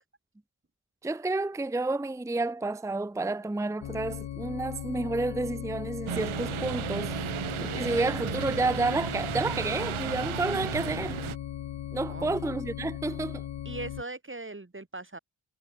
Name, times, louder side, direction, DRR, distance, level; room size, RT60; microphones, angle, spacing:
voice 1, 1.0-7.1 7.6-11.2 11.9-13.4, right 2 dB, 5° right, 0.7 m, -30 dB
sound 1, 3.8-14.0, left 10 dB, 65° left, 0.9 m, -38 dB
sound 2, 6.1-11.3, right 11 dB, 85° right, 1.1 m, -34 dB
voice 2, 12.0-12.3 13.6-15.2, right 2 dB, 25° right, 5.1 m, -39 dB
cardioid pair, 65°, 47 cm